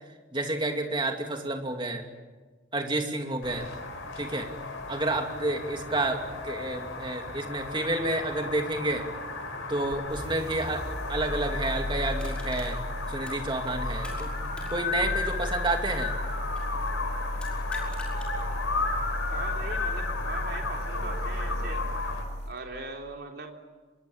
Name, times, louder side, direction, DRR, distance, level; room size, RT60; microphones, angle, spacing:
voice 1, 0.3-2.0 2.7-3.7 4.2-4.5 4.9-9.1 9.7-10.8 11.1-12.8 13.1-14.3 14.7-16.1, right 2 dB, 25° right, 4 dB, 2.6 m, -30 dB
sound 1, 3.4-22.2, left 3 dB, 85° left, 5.1 m, -35 dB
sound 2, 9.9-22.6, left 1 dB, 35° left, 3.8 m, -34 dB
Crushing, 12.2-14.3 14.5-16.8 17.3-18.3 18.8-18.9, left 1 dB, 5° left, 5.8 m, -47 dB
voice 2, 19.3-21.8 22.5-23.6, right 3 dB, 50° right, 2 dB, 3.6 m, -40 dB
25.5 x 22.0 x 8.6 m, 1.3 s
head